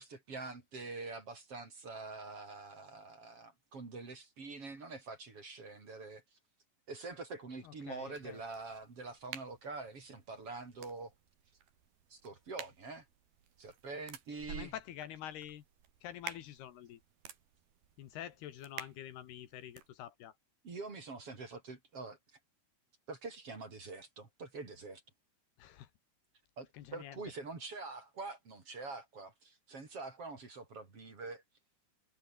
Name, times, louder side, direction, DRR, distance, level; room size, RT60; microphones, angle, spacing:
voice 1, 0.0-6.4 6.9-11.1 12.1-13.0 13.6-14.7 20.6-22.2 23.1-25.0 26.6-31.4, right 3 dB, 35° right, 4.6 m, -45 dB
voice 2, 7.6-8.4 14.5-15.6 16.0-17.0 18.0-20.3 25.6-25.9 26.7-27.2, left 11 dB, 70° left, 3.5 m, -47 dB
sound 1, 8.1-19.9, right 9 dB, 65° right, 4.4 m, -52 dB
omnidirectional pair, 4.8 m